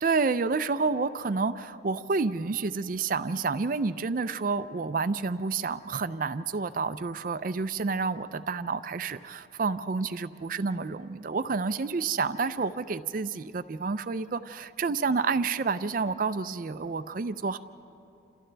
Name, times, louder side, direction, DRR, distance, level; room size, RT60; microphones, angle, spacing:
voice 1, 0.0-17.6, right 4 dB, 45° right, 12 dB, 0.4 m, -29 dB
29.5 x 26.5 x 3.4 m, 2.7 s
head